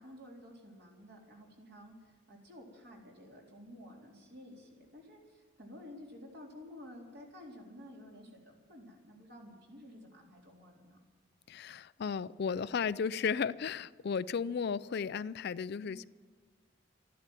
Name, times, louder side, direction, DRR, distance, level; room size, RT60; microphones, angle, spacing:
voice 1, 0.0-11.0 15.8-16.0, left 1 dB, 55° right, -1 dB, 3.8 m, -52 dB
voice 2, 11.5-16.1, left 6 dB, 50° left, 16 dB, 0.4 m, -34 dB
13.5 x 11.5 x 9.0 m, 1.5 s
head